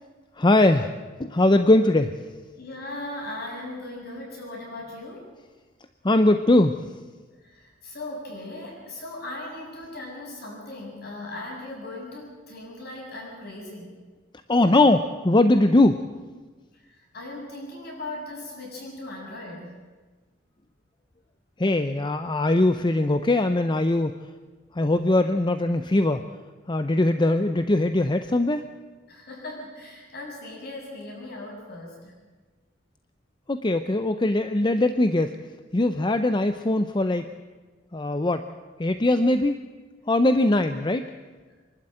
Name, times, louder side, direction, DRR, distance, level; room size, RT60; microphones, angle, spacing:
voice 1, 0.4-0.9 1.2-2.2 6.0-6.8 14.5-16.0 21.6-24.2 24.7-26.2 26.7-28.6 33.5-35.4 35.7-37.2 37.9-38.4 38.8-39.6 40.1-41.1, left 2 dB, 25° left, 8 dB, 0.6 m, -21 dB
voice 2, 2.5-5.3 7.4-14.0 17.0-19.8 29.1-32.1, left 2 dB, 55° left, -1 dB, 7.3 m, -38 dB
25.0 x 12.0 x 9.0 m, 1.3 s
head